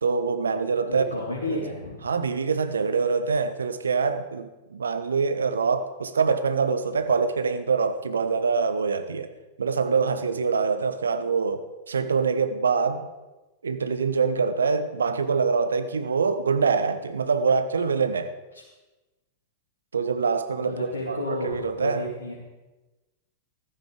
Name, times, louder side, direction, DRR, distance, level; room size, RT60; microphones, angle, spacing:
voice 1, 0.0-1.0 2.0-9.3 9.6-13.1 13.6-18.3 19.9-22.0, right 5 dB, 75° right, 1.0 m, -25 dB
voice 2, 0.9-2.0 18.5-18.6 20.6-22.4, left 1 dB, 80° left, 2.9 m, -31 dB
15.0 x 13.0 x 4.9 m
figure-of-eight pair, 95°, 0 cm